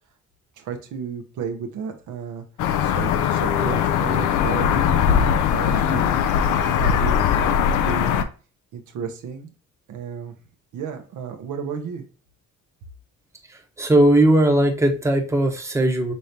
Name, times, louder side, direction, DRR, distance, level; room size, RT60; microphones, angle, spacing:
voice 1, 0.6-2.4 2.8-6.2 6.6-7.5 7.8-8.3 8.7-9.5 9.9-10.3 10.7-12.0, right 6 dB, 80° right, 5 dB, 0.9 m, -33 dB
sound 1, 2.6-8.2, left 8 dB, 85° left, 0.5 m, -20 dB
voice 2, 13.5-16.1, right 1 dB, 10° right, 3 dB, 0.9 m, -18 dB
5.4 x 3.3 x 2.7 m, 0.36 s
cardioid pair, 90°, 30 cm